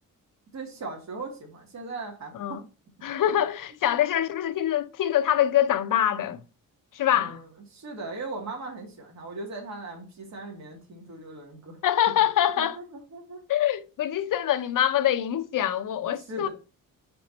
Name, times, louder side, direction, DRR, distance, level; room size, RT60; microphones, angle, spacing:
voice 1, 0.5-2.6 3.2-3.3 7.1-11.8 12.6-13.4 16.2-16.5, right 3 dB, 50° right, 2.3 m, -39 dB
voice 2, 3.0-6.4 6.9-7.4 11.8-12.8 13.5-16.5, left 11 dB, 65° left, 0.8 m, -24 dB
5.1 x 4.6 x 5.4 m
wide cardioid pair, 155°, 34 cm